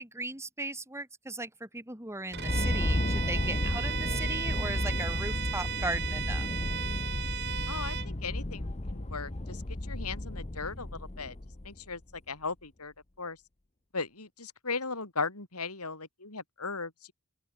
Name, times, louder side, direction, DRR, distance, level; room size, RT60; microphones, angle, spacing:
voice 1, 0.0-6.5, right 2 dB, 10° right, 4.0 m, -37 dB
sound 1, 2.3-11.9, left 1 dB, 30° left, 1.0 m, -33 dB
Bowed string instrument, 2.3-8.1, right 9 dB, 50° right, 1.6 m, -36 dB
voice 2, 7.7-11.3 11.6-12.0 12.3-13.4 13.9-16.9, left 4 dB, 85° left, 5.3 m, -37 dB
open air
head